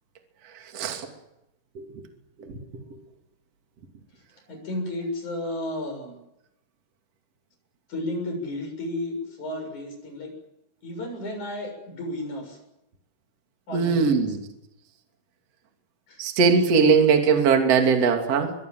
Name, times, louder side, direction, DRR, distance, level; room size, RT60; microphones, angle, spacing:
voice 1, 0.7-1.1 2.5-2.6 13.7-14.4 16.2-18.5, right 5 dB, 40° right, 4 dB, 3.3 m, -20 dB
voice 2, 4.5-6.2 7.9-10.3 10.8-12.6 13.7-14.3 16.1-16.2, left 1 dB, 40° left, 4 dB, 8.3 m, -33 dB
24.5 x 22.0 x 7.9 m, 0.88 s
omnidirectional pair, 5.1 m